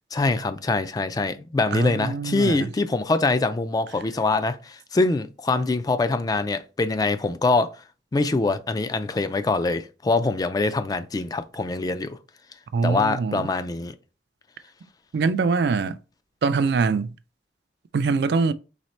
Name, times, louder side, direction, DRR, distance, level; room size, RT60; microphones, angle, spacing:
voice 1, 0.1-7.8 8.1-12.2 12.8-13.9, left 3 dB, 20° left, 0.3 m, -24 dB
voice 2, 1.7-2.7 12.7-13.5 15.1-16.0 16.4-17.2 17.9-18.5, right 4 dB, 65° right, 0.3 m, -23 dB
4.1 x 3.2 x 3.2 m
head